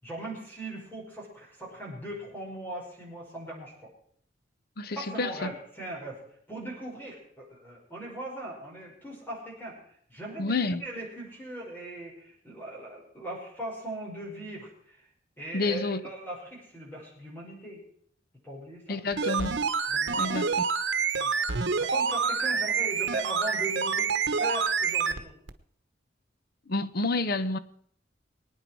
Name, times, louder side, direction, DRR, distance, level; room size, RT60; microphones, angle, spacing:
voice 1, 0.0-3.9 4.9-6.2 6.5-9.8 10.1-15.0 15.4-17.8 18.4-19.0 19.9-20.4 21.2-21.3 21.8-25.3, right 1 dB, 10° left, 5.9 m, -39 dB
voice 2, 4.8-5.5 10.4-10.8 15.5-16.1 18.9-19.6 20.2-20.6 26.7-27.6, left 3 dB, 55° left, 0.8 m, -29 dB
sound 1, 19.1-25.2 25.5-25.6, right 5 dB, 90° right, 1.1 m, -27 dB
23.5 x 9.5 x 4.7 m
head